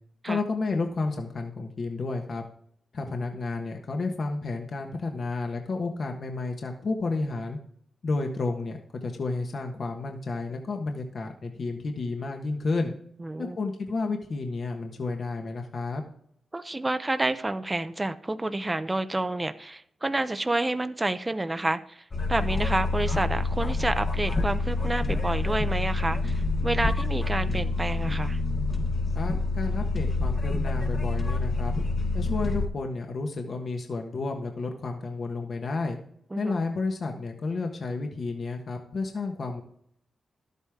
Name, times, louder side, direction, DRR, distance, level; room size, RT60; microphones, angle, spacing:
voice 1, 0.2-2.4 2.9-7.6 8.0-12.9 13.4-16.0 29.1-31.7 32.1-36.0 36.4-39.6, left 3 dB, 55° left, 3 dB, 1.3 m, -31 dB
voice 2, 13.2-13.6 16.5-22.0 22.3-28.4 36.3-36.6, right 2 dB, 20° right, 11 dB, 0.6 m, -29 dB
sound 1, 22.1-32.7, left 3 dB, 35° left, 1.1 m, -27 dB
12.0 x 8.2 x 3.6 m, 0.68 s
cardioid pair, 90°, 0 cm